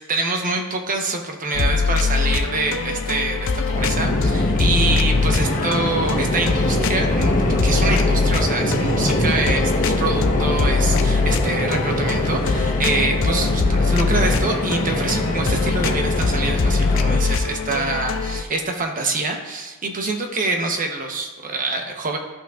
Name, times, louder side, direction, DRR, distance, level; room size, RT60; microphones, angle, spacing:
voice 1, 0.1-22.2, right 3 dB, 40° right, 3 dB, 1.0 m, -25 dB
sound 1, 1.5-18.4, left 4 dB, 60° left, 0.5 m, -22 dB
sound 2, 3.7-17.2, equal, 40° left, 1.2 m, -23 dB
13.0 x 5.8 x 2.5 m, 1.2 s
head